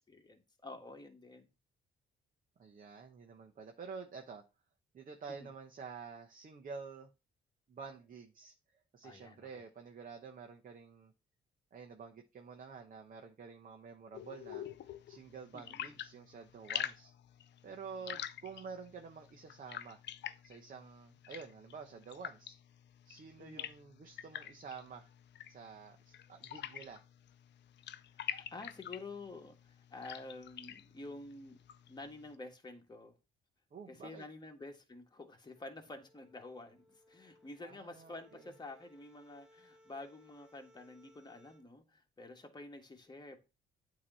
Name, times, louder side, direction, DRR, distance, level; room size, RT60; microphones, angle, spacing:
voice 1, 0.1-1.5 5.4-5.5 9.0-9.5 15.5-16.0 18.0-18.2 23.4-23.7 28.2-31.6 31.9-33.1 33.9-43.4, left 2 dB, 20° left, 3 dB, 1.5 m, -49 dB
voice 2, 2.6-4.4 4.9-7.1 7.7-11.1 11.7-14.7 15.1-17.1 17.6-20.0 20.4-22.6 23.0-25.1 25.5-27.0 33.7-34.2 37.6-38.5, right 5 dB, 45° right, 3 dB, 1.0 m, -49 dB
sound 1, 14.1-32.4, left 11 dB, 60° left, 0.5 m, -47 dB
sound 2, 35.5-41.7, left 1 dB, 5° right, 1.9 m, -65 dB
8.6 x 3.0 x 5.5 m, 0.29 s
cardioid pair, 90°, 20 cm